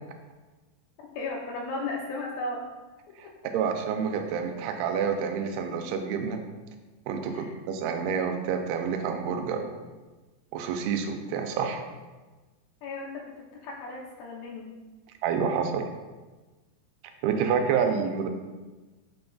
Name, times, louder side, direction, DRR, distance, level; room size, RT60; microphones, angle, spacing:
voice 1, 1.2-2.6 7.3-7.5 12.8-14.7, left 2 dB, 75° left, -2 dB, 2.3 m, -35 dB
voice 2, 3.5-6.4 7.1-9.7 10.5-11.8 15.2-15.9 17.2-18.3, right 6 dB, 85° right, 5 dB, 2.3 m, -28 dB
6.0 x 3.9 x 2.3 m, 1.2 s
omnidirectional pair, 4.6 m